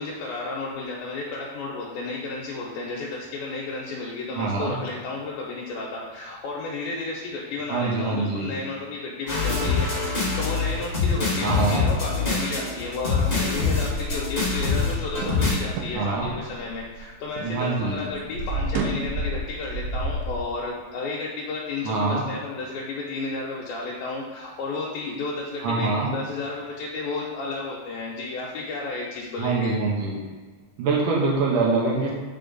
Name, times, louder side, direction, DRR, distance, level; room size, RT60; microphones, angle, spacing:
voice 1, 0.0-29.7, left 3 dB, 80° left, -4 dB, 2.6 m, -32 dB
voice 2, 4.3-4.8 7.7-8.5 11.4-11.8 15.9-16.3 17.4-18.0 21.8-22.2 25.6-26.1 29.4-30.2 30.8-32.1, right 3 dB, 65° right, -2 dB, 2.4 m, -24 dB
sound 1, 9.3-15.6, left 4 dB, 20° left, 1.3 m, -25 dB
sound 2, 13.5-17.5 17.8-20.3, right 2 dB, 85° right, 2.7 m, -31 dB
7.4 x 5.0 x 4.0 m, 1.5 s
omnidirectional pair, 4.3 m